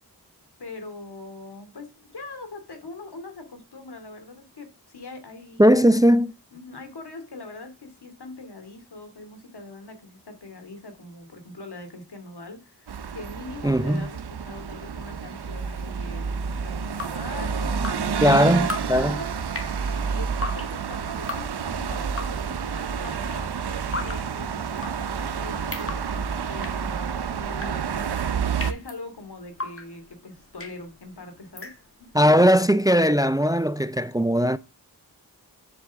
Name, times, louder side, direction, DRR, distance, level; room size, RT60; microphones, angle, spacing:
voice 1, 0.6-6.1 6.5-26.2 26.5-31.7 32.0-32.1, left 3 dB, 85° left, 2.6 m, -42 dB
voice 2, 5.6-6.3 13.6-14.1 18.2-19.2 32.1-34.6, equal, 10° right, 0.4 m, -19 dB
sound 1, 12.9-28.7, right 6 dB, 80° right, 0.8 m, -29 dB
Drip, 16.8-32.2, left 3 dB, 35° left, 1.7 m, -39 dB
7.7 x 7.4 x 3.6 m
cardioid pair, 45°, 39 cm